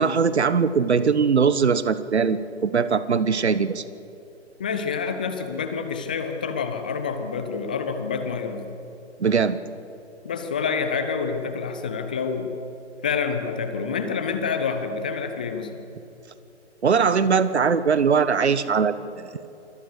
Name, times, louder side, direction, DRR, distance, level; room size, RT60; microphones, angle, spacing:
voice 1, 0.0-3.8 9.2-9.6 16.8-19.3, right 6 dB, 65° right, 15 dB, 1.3 m, -21 dB
voice 2, 4.6-8.8 10.2-12.5 13.0-15.8, left 5 dB, 10° left, 8 dB, 0.4 m, -28 dB
26.5 x 21.0 x 6.6 m, 2.8 s
figure-of-eight pair, 135°, 36 cm